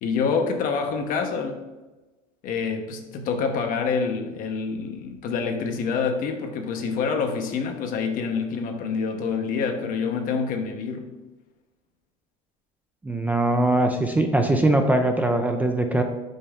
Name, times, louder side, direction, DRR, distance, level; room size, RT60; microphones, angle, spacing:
voice 1, 0.0-1.6 2.4-11.1, left 5 dB, 50° left, 5 dB, 0.9 m, -27 dB
voice 2, 13.0-16.0, right 1 dB, 10° right, 4 dB, 0.4 m, -21 dB
5.4 x 5.0 x 3.5 m, 1.2 s
cardioid pair, 140°, 18 cm